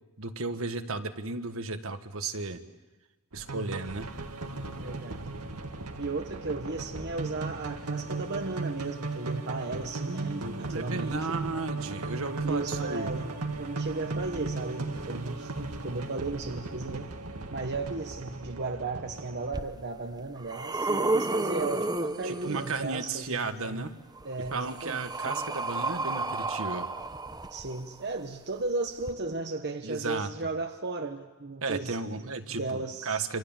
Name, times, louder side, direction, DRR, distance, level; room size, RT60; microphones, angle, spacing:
voice 1, 0.2-2.6 3.3-4.1 10.1-13.1 22.2-23.9 24.5-26.9 29.8-30.3 31.6-33.4, right 3 dB, 65° right, 8 dB, 1.6 m, -34 dB
sound 1, 3.3-19.5, right 3 dB, 85° right, 2.0 m, -36 dB
voice 2, 4.8-5.2 6.0-11.4 12.4-17.1 17.5-23.9 24.2-25.1 27.5-33.3, right 3 dB, 50° right, 5 dB, 1.2 m, -35 dB
sound 2, 19.5-19.6 20.2-23.0 24.2-28.1 29.0-29.1, right 2 dB, 20° right, 0.9 m, -32 dB
27.5 x 26.5 x 7.4 m, 1.2 s
head